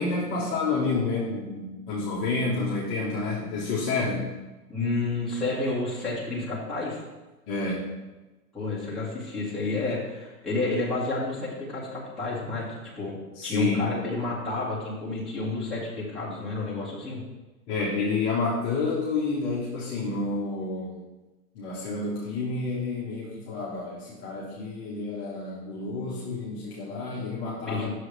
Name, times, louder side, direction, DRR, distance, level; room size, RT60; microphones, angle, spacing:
voice 1, 0.0-4.2 7.5-7.8 13.4-13.9 15.4-15.5 17.7-21.0 21.5-27.9, left 3 dB, 25° left, -7 dB, 1.3 m, -29 dB
voice 2, 4.7-7.0 8.5-12.7 13.0-13.2 13.4-17.2 27.6-27.9, left 2 dB, ahead, -10 dB, 1.8 m, -30 dB
7.6 x 6.7 x 3.3 m, 1.1 s
hypercardioid pair, 155°, 46 cm